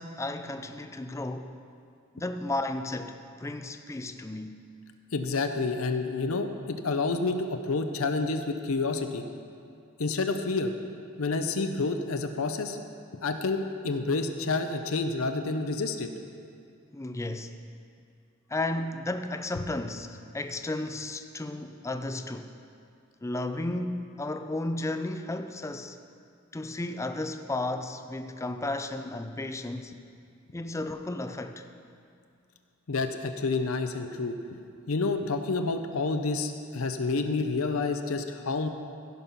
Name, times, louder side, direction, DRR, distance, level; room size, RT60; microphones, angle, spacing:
voice 1, 0.0-1.5 2.1-4.6 16.9-17.5 18.5-22.6 23.2-26.0 26.5-29.9 30.5-31.7, left 2 dB, 15° left, 8 dB, 0.4 m, -33 dB
voice 2, 5.1-9.2 10.0-10.7 11.2-12.8 13.2-16.1 32.9-34.4 34.9-38.7, left 3 dB, 75° left, 7 dB, 0.6 m, -29 dB
15.5 x 5.5 x 5.7 m, 2.4 s
head